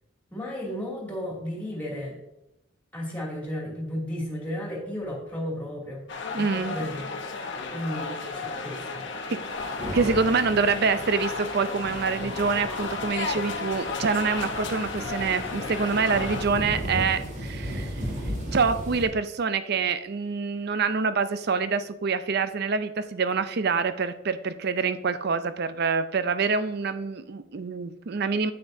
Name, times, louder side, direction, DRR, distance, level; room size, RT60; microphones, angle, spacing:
voice 1, 0.3-2.2 2.9-6.0 6.3-7.1 7.7-9.3, equal, 10° left, -4 dB, 2.6 m, -34 dB
sound 1, 6.1-16.5, left 4 dB, 60° left, 1.0 m, -34 dB
voice 2, 6.3-6.8 9.3-9.4 9.9-18.0 18.5-28.5, right 5 dB, 50° right, 12 dB, 0.5 m, -26 dB
sound 2, 9.5-19.1, equal, 35° right, 2.2 m, -36 dB
9.5 x 8.6 x 2.7 m, 0.90 s
head